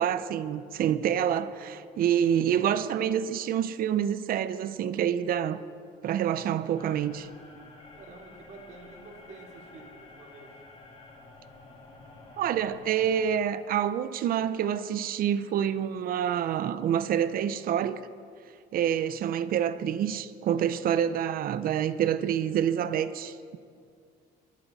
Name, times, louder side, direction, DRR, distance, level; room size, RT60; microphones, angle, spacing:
voice 1, 0.0-5.6 6.0-7.3 12.4-18.0 18.7-23.6, right 9 dB, 60° right, 0.7 m, -27 dB
sound 1, 6.7-13.4, left 3 dB, 35° left, 3.1 m, -51 dB
voice 2, 7.9-10.6, right 3 dB, 45° right, 3.8 m, -49 dB
22.0 x 11.5 x 4.2 m
cardioid pair, 110°, 17 cm